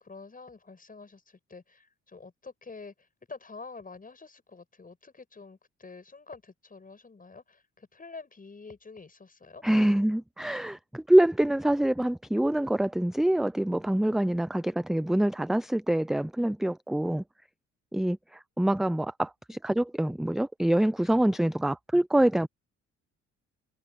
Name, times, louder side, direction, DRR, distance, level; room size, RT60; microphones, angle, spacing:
voice 1, 0.0-9.6, left 4 dB, 30° left, 7.2 m, -47 dB
voice 2, 9.6-17.2 17.9-22.5, right 1 dB, ahead, 0.4 m, -25 dB
cardioid pair, 90°, 30 cm